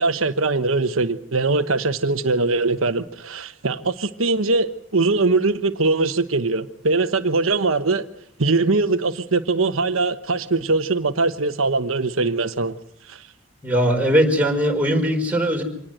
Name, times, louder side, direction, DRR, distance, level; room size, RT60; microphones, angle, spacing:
voice 1, 0.0-8.0 8.4-12.7 13.1-13.2, right 3 dB, 85° right, 8 dB, 1.2 m, -21 dB
voice 2, 13.6-15.6, equal, 5° right, 0 dB, 4.6 m, -19 dB
25.5 x 19.0 x 7.9 m, 0.65 s
head